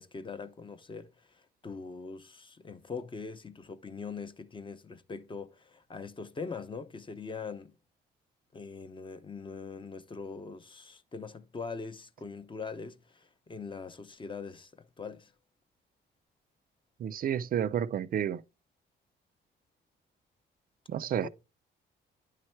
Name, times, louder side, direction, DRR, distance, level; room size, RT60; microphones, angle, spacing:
voice 1, 0.0-7.8 8.5-15.3 21.1-21.3, left 4 dB, 25° left, 0.6 m, -42 dB
voice 2, 17.0-18.4 20.9-21.3, right 9 dB, 45° right, 0.4 m, -30 dB
9.6 x 3.2 x 4.4 m
cardioid pair, 90°, 20 cm